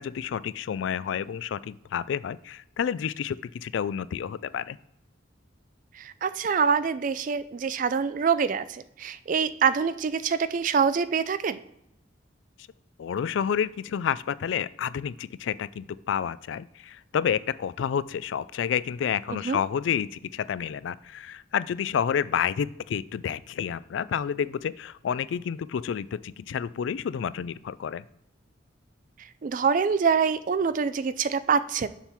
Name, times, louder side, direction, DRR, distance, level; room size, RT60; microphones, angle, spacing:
voice 1, 0.0-4.8 13.0-28.0, left 8 dB, 75° left, 18 dB, 0.3 m, -29 dB
voice 2, 6.0-11.6 19.4-19.6 29.4-31.9, right 6 dB, 45° right, 14 dB, 0.3 m, -25 dB
7.0 x 3.7 x 5.8 m, 0.79 s
head